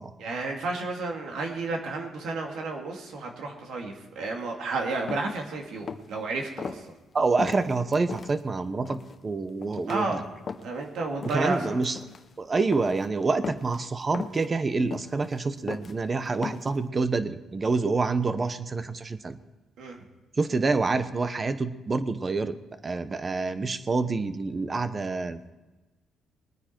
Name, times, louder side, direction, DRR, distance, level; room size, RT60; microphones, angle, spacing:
voice 1, 0.2-6.8 9.9-10.2 10.6-11.8 19.8-20.0, right 3 dB, 75° right, 1 dB, 2.4 m, -32 dB
sound 1, 5.1-5.4 5.8-6.1 6.6-6.8 7.4-8.3 8.8-9.2 9.6-10.0 10.5-10.8 11.2-11.6 11.8-12.2 12.7-13.1 13.4-13.8 14.1-14.5 14.9-15.4 15.7-15.9 16.4-16.8, left 5 dB, 40° left, 0.8 m, -37 dB
voice 2, 7.1-10.2 11.3-12.0 12.4-19.4 20.4-22.5 22.8-25.5, right 3 dB, 30° right, 11 dB, 0.9 m, -27 dB
21.0 x 9.6 x 4.5 m, 1.1 s
cardioid pair, 90°, 0 cm